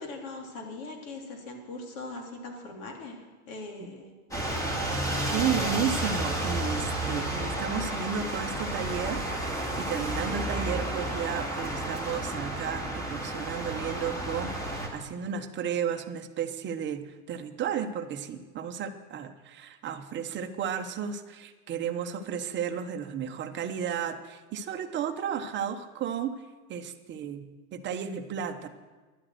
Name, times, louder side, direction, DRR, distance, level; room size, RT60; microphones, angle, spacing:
voice 1, 0.0-3.2 3.5-4.8, left 2 dB, 65° left, 2 dB, 3.3 m, -41 dB
sound 1, 4.3-14.9, right 1 dB, 5° left, 2.4 m, -31 dB
voice 2, 5.3-26.4 26.7-28.7, right 7 dB, 25° right, 6 dB, 1.0 m, -33 dB
11.5 x 8.5 x 9.4 m, 1.3 s
supercardioid pair, 140°, 44 cm